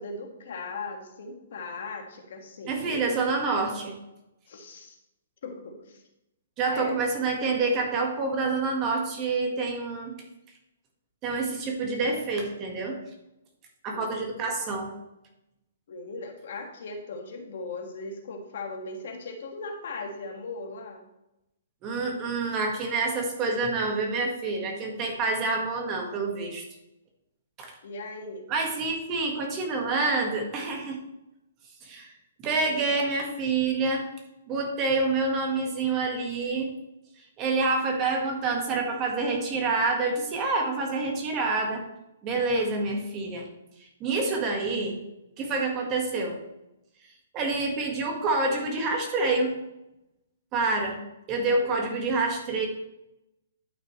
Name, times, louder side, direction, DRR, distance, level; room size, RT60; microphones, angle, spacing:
voice 1, 0.0-3.2 4.5-5.0 5.4-6.0 6.6-7.0 13.9-14.3 15.9-21.0 27.8-28.5 32.6-32.9 51.5-51.7, left 3 dB, 60° left, 3 dB, 1.6 m, -38 dB
voice 2, 2.7-4.0 6.6-10.1 11.2-13.0 13.8-14.9 21.8-26.6 27.6-27.7 28.5-31.0 31.8-32.1 32.4-34.0 34.5-36.7 37.4-41.9 42.2-43.5 44.0-45.0 45.4-46.4 47.3-49.5 50.5-51.0 51.3-52.7, right 3 dB, 20° right, 2 dB, 1.4 m, -27 dB
11.0 x 6.1 x 3.1 m, 0.89 s
hypercardioid pair, 165°, 0 cm